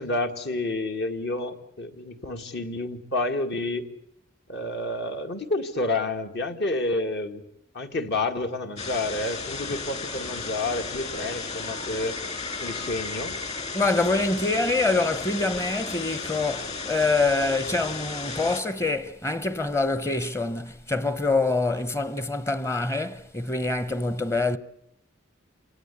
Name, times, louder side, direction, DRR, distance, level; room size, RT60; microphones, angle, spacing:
voice 1, 0.0-3.9 4.5-7.4 7.7-12.2 12.6-13.3, left 2 dB, 60° left, 2.1 m, -29 dB
sound 1, 8.8-18.6, left 4 dB, 35° left, 2.7 m, -34 dB
voice 2, 13.7-24.6, left 3 dB, 15° left, 0.9 m, -25 dB
27.5 x 18.0 x 8.4 m
head